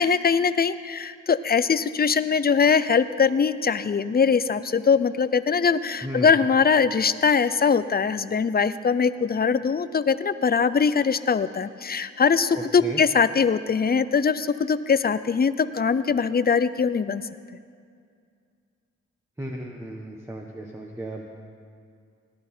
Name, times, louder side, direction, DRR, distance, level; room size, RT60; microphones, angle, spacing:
voice 1, 0.0-17.2, left 6 dB, 30° left, 14 dB, 0.6 m, -22 dB
voice 2, 6.0-6.3 12.5-13.0 19.4-21.3, equal, 10° right, -1 dB, 1.4 m, -35 dB
18.0 x 11.5 x 4.5 m, 2.3 s
cardioid pair, 55°, 30 cm